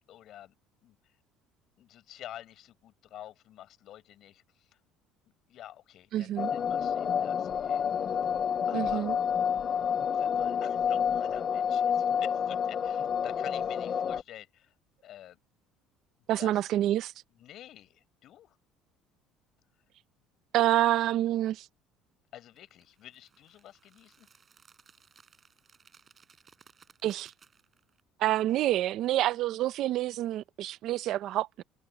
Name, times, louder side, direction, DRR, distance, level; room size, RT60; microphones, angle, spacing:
voice 1, 0.1-0.5 0.8-1.2 1.8-4.8 5.5-8.2 8.7-9.1 10.1-14.7 15.0-15.4 16.4-16.6 17.3-18.6 22.3-24.3, left 12 dB, 50° left, 6.0 m, -49 dB
voice 2, 6.1-6.5 8.7-9.2 16.3-17.1 20.5-21.7 27.0-27.3 28.2-31.6, right 13 dB, 55° right, 0.7 m, -27 dB
sound 1, 6.4-14.2, left 7 dB, 35° left, 0.4 m, -29 dB
sound 2, 22.6-28.0, right 6 dB, 25° right, 5.5 m, -61 dB
cardioid pair, 135°, 0 cm